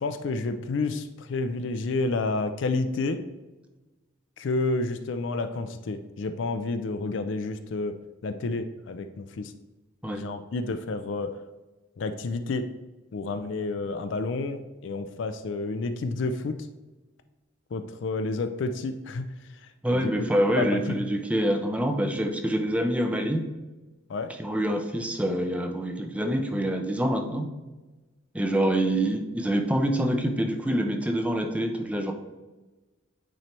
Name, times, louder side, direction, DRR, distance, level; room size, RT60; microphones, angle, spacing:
voice 1, 0.0-3.2 4.4-7.9 8.2-9.5 10.0-11.3 12.0-12.6 13.1-16.5 17.7-19.3 19.9-20.1 20.6-20.8 21.1-21.2 24.1-24.3, left 3 dB, 65° left, 9 dB, 0.4 m, -30 dB
voice 2, 19.8-23.4 24.3-27.5 28.3-32.1, right 1 dB, 5° right, 5 dB, 0.4 m, -26 dB
8.9 x 3.1 x 4.3 m, 1.2 s
head